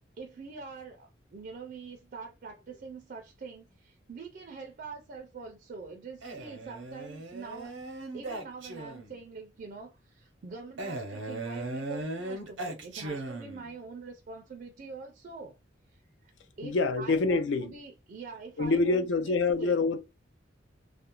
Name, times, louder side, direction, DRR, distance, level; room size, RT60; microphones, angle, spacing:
voice 1, 0.2-7.7 8.1-15.6 15.9-16.3 16.6-19.8, right 4 dB, 45° right, 0.4 m, -44 dB
Male speech man speaking, 6.2-9.2 10.8-13.8, right 2 dB, 90° right, 0.6 m, -38 dB
voice 2, 16.6-17.7 18.6-20.0, left 3 dB, 75° left, 0.4 m, -26 dB
2.4 x 2.0 x 2.9 m
head